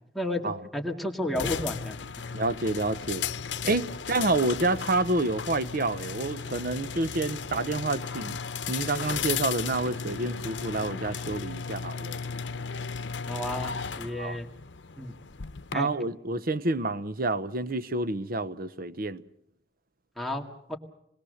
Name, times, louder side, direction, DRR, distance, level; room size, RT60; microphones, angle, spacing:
voice 1, 0.7-2.3 13.3-14.5 15.0-15.1 15.7-15.9 20.2-20.4 20.7-20.8, left 1 dB, ahead, 2.1 m, -32 dB
sound 1, 1.3-15.8, left 6 dB, 80° left, 0.8 m, -35 dB
voice 2, 2.3-3.3 3.6-8.4 8.7-12.2 14.1-14.4 15.7-19.2, right 2 dB, 55° right, 0.9 m, -28 dB
28.0 x 21.0 x 6.5 m
head